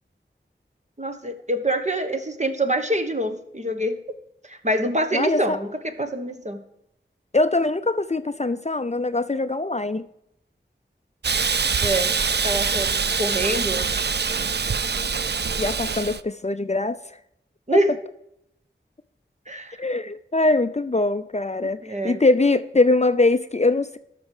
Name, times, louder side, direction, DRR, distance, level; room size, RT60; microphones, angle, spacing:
voice 1, 1.0-4.0 4.4-6.6 11.8-12.1 12.4-12.9 13.2-13.9 17.7-17.9 19.5-19.8 21.8-22.2, right 1 dB, 35° right, 6 dB, 1.3 m, -25 dB
voice 2, 5.1-5.6 7.3-10.1 15.6-17.2 17.7-17.8 19.8-24.0, left 2 dB, 35° left, 11 dB, 0.5 m, -22 dB
Hiss, 11.2-16.2, right 5 dB, 55° right, 0.5 m, -24 dB
12.5 x 6.1 x 4.9 m, 0.78 s
wide cardioid pair, 45°, 20 cm